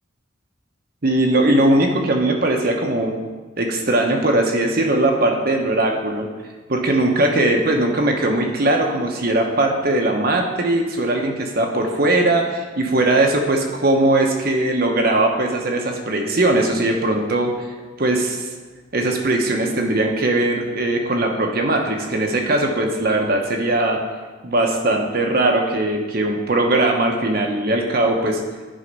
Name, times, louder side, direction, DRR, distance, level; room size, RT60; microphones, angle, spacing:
voice 1, 1.0-3.1 3.6-6.3 6.7-17.7 18.0-18.5 18.9-24.0 24.4-28.4, right 2 dB, 50° right, 2 dB, 1.0 m, -19 dB
10.0 x 4.0 x 5.4 m, 1.3 s
head